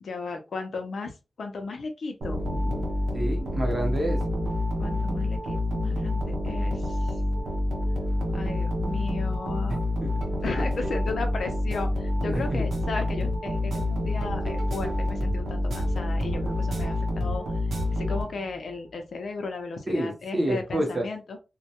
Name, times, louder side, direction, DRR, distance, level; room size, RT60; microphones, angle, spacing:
voice 1, 0.0-2.9 4.8-7.2 8.3-9.8 10.4-17.4 17.9-21.4, left 3 dB, 60° left, 5 dB, 0.5 m, -35 dB
sound 1, 2.2-18.6, left 1 dB, 90° right, 0.7 m, -28 dB
voice 2, 3.1-4.2 12.3-12.6 19.9-21.0, right 1 dB, 25° right, 2 dB, 0.7 m, -28 dB
2.2 x 2.1 x 2.8 m, 0.27 s
wide cardioid pair, 165°, 0 cm